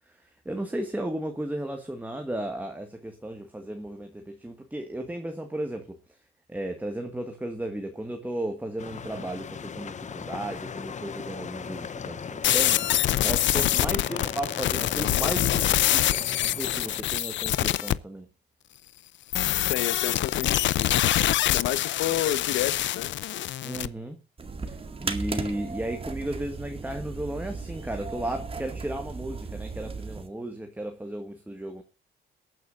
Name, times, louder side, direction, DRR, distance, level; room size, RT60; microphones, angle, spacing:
voice 1, 0.5-6.0 6.5-18.3 23.6-24.2 24.6-24.8 25.0-31.8, right 1 dB, 10° right, 1.8 m, -34 dB
sound 1, 8.8-17.0, left 6 dB, 35° left, 0.8 m, -38 dB
sound 2, 12.4-17.9 19.3-23.9, left 13 dB, 70° left, 0.6 m, -25 dB
voice 2, 19.7-20.9 21.5-23.1, left 12 dB, 85° left, 1.2 m, -30 dB
sound 3, 24.4-30.3, right 4 dB, 30° right, 2.0 m, -36 dB
22.0 x 9.3 x 2.6 m
cardioid pair, 90°, 20 cm